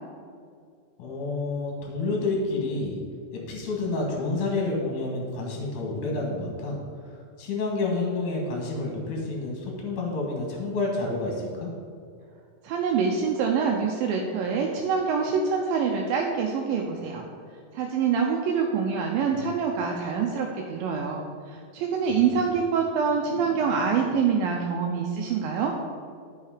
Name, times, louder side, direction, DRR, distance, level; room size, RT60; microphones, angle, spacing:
voice 1, 1.0-3.0 3.3-6.8 7.0-11.7, left 3 dB, 65° left, -1 dB, 2.6 m, -29 dB
voice 2, 12.6-17.3 17.7-25.7, right 6 dB, 80° right, 1 dB, 2.3 m, -25 dB
9.8 x 5.7 x 4.9 m, 2.2 s
omnidirectional pair, 4.3 m